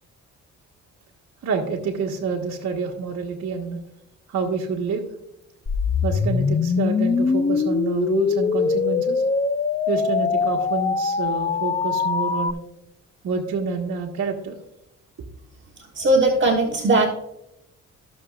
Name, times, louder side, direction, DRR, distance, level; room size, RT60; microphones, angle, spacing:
voice 1, 1.4-3.8 4.3-5.1 6.0-9.2 9.9-12.6 13.2-14.6, right 5 dB, 60° right, -3 dB, 1.5 m, -27 dB
sound 1, 5.7-12.5, left 5 dB, 25° left, 0.5 m, -22 dB
voice 2, 16.0-17.1, right 2 dB, 40° right, 1 dB, 1.3 m, -18 dB
15.5 x 6.5 x 2.4 m, 0.85 s
cardioid pair, 90°, 30 cm